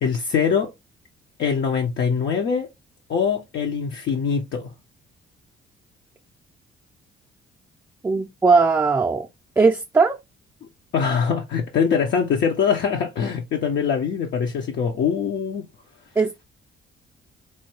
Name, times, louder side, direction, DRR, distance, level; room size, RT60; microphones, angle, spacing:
voice 1, 0.0-0.7 1.4-2.7 3.1-4.7 10.9-15.6, left 6 dB, 65° left, 0.7 m, -23 dB
voice 2, 8.0-9.3 9.6-10.2 16.2-16.4, right 4 dB, 10° right, 0.4 m, -19 dB
4.4 x 2.2 x 3.0 m
cardioid pair, 90°, 20 cm